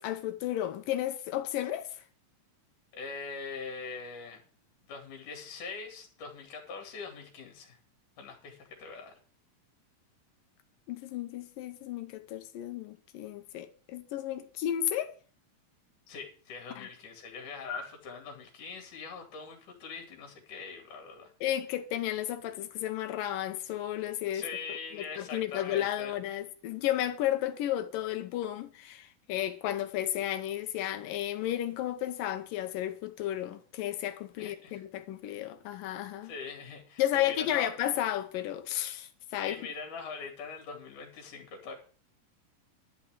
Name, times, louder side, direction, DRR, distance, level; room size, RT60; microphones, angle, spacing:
voice 1, 0.0-1.9 10.9-15.1 16.7-16.9 21.4-24.5 24.9-36.3 37.0-39.6, left 12 dB, 80° left, 2.7 m, -33 dB
voice 2, 2.9-4.4 4.9-7.8 8.2-9.1 16.1-21.3 24.3-26.1 34.4-34.8 36.2-37.7 39.4-41.7, left 5 dB, 65° left, 3.8 m, -42 dB
11.5 x 5.9 x 8.9 m
omnidirectional pair, 4.0 m